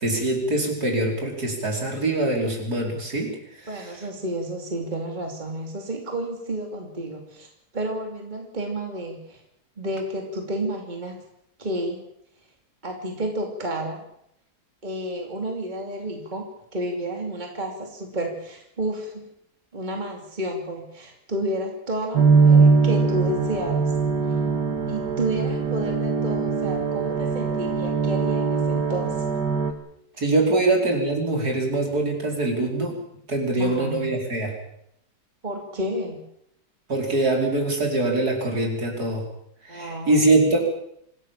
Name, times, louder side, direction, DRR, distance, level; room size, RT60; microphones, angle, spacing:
voice 1, 0.0-3.3 30.2-32.9 33.3-34.5 36.9-39.2 39.7-40.6, right 2 dB, 65° right, 1 dB, 5.5 m, -23 dB
voice 2, 3.7-7.5 7.7-9.4 9.8-11.2 11.6-12.0 12.8-14.0 14.8-16.5 16.7-19.2 19.7-23.8 24.9-29.2 30.5-30.6 33.6-34.1 35.4-36.2 39.7-40.6, right 1 dB, 25° right, 2 dB, 3.0 m, -31 dB
sound 1, 22.1-29.7, right 4 dB, 85° right, 2.4 m, -21 dB
25.5 x 16.0 x 7.4 m, 0.75 s
omnidirectional pair, 1.8 m